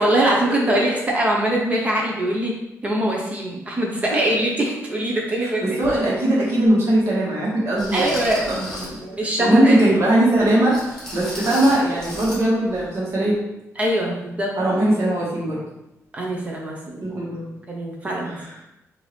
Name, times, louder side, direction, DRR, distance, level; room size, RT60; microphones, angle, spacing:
voice 1, 0.0-2.5 2.8-5.8 7.9-8.7 9.0-9.8 13.8-14.5 16.1-17.2 17.7-18.4, right 1 dB, 25° right, -2 dB, 0.7 m, -22 dB
voice 2, 5.6-8.1 8.5-9.0 9.4-13.4 14.6-15.6 17.0-17.5 18.3-18.5, right 1 dB, 55° right, -6 dB, 1.4 m, -20 dB
sound 1, 5.8-6.0 6.6-6.7 7.8-9.0 10.7-12.4 12.7-12.9 13.3-13.4, left 1 dB, 10° left, 1.2 m, -34 dB
4.5 x 2.7 x 3.3 m, 0.89 s
wide cardioid pair, 160°, 6 cm